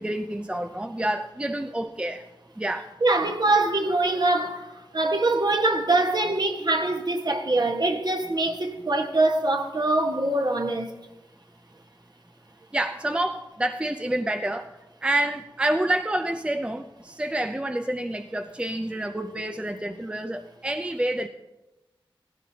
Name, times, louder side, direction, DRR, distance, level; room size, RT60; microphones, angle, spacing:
voice 1, 0.0-2.2 2.6-2.9 12.7-21.3, right 1 dB, 10° right, 0.5 m, -28 dB
voice 2, 3.0-4.7 4.9-10.9, right 2 dB, 50° right, 1.4 m, -23 dB
16.0 x 15.5 x 2.8 m
wide cardioid pair, 55°, 9 cm